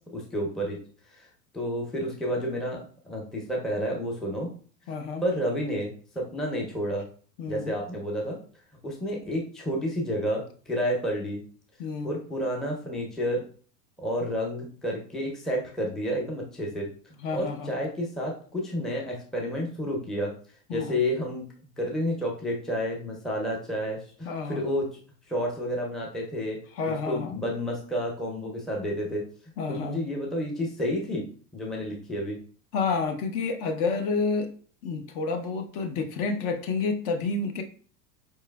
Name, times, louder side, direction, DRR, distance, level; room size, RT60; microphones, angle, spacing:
voice 1, 0.1-0.8 1.1-1.3 1.5-4.5 5.2-7.0 7.5-8.4 8.8-11.4 12.0-13.4 14.0-16.9 17.3-20.3 20.7-21.4 21.8-24.9 25.3-26.6 26.8-29.3 29.7-31.3 31.5-32.4, equal, ahead, -2 dB, 0.5 m, -30 dB
voice 2, 4.9-5.2 7.4-7.7 11.8-12.1 17.2-17.7 20.7-21.0 24.2-24.7 26.7-27.4 29.6-30.0 32.7-34.5 34.8-37.6, left 4 dB, 50° left, 6 dB, 0.7 m, -29 dB
4.4 x 3.1 x 2.2 m, 0.43 s
hypercardioid pair, 100°, 48 cm